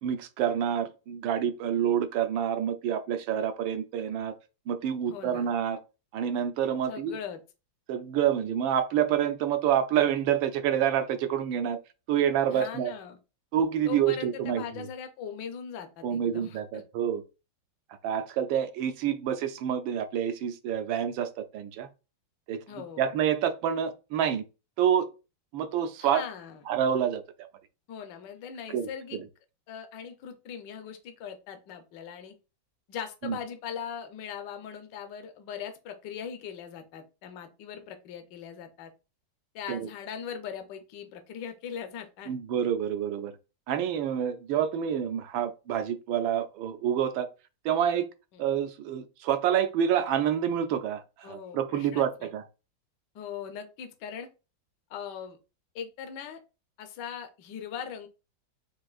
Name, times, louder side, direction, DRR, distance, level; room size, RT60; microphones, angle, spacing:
voice 1, 0.0-4.3 4.7-5.8 6.1-7.2 7.9-11.8 12.1-12.9 13.5-14.6 16.0-17.2 18.0-21.9 22.5-24.4 24.8-25.1 25.5-26.2 26.7-27.2 28.7-28.9 33.2-33.4 39.7-39.9 42.3-43.3 43.7-47.3 47.6-48.1 48.4-52.4, right 9 dB, 90° right, 1.4 m, -27 dB
voice 2, 5.1-5.5 6.9-7.4 12.5-13.2 13.8-16.8 22.7-23.1 26.0-26.6 27.9-29.2 29.7-32.3 32.9-38.9 39.5-42.3 48.3-48.4 51.2-52.3 53.1-54.3 54.9-55.4 55.7-56.4 56.8-58.1, left 8 dB, 70° left, 1.3 m, -40 dB
7.2 x 2.5 x 2.3 m
omnidirectional pair, 2.1 m